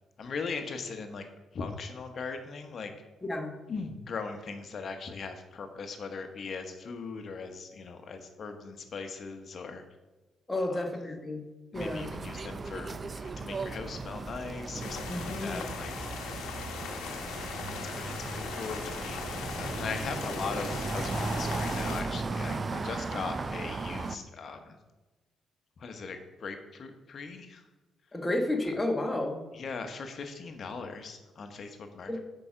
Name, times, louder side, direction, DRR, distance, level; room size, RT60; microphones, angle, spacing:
voice 1, 0.2-1.3 1.5-2.9 3.7-9.8 10.6-10.9 11.7-16.4 16.9-17.2 17.6-24.8 25.8-27.6 29.5-32.2, left 4 dB, 50° left, 6 dB, 1.0 m, -40 dB
voice 2, 3.2-3.5 10.5-11.4 11.7-12.1 15.1-15.7 28.1-29.4 32.1-32.2, left 1 dB, 15° left, 2 dB, 1.2 m, -31 dB
sound 1, 11.7-24.2, right 3 dB, 35° right, 0.4 m, -36 dB
sound 2, 14.8-22.0, left 6 dB, 85° left, 0.9 m, -39 dB
6.7 x 4.9 x 5.0 m, 1.1 s
cardioid pair, 90°, 0 cm